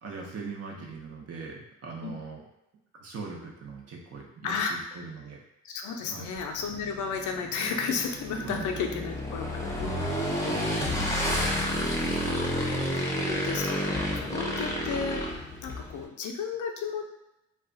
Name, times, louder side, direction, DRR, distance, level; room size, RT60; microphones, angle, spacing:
voice 1, 0.0-2.4 3.0-5.4 6.1-6.3 8.4-8.7 10.5-10.8, right 4 dB, 55° right, -1 dB, 0.9 m, -41 dB
voice 2, 4.4-5.0 5.6-10.1 11.4-17.2, left 5 dB, 75° left, 3 dB, 0.6 m, -34 dB
Motorcycle / Engine, 6.4-16.0, equal, 10° left, 0.7 m, -30 dB
2.4 x 2.3 x 3.8 m, 0.89 s
cardioid pair, 90°, 30 cm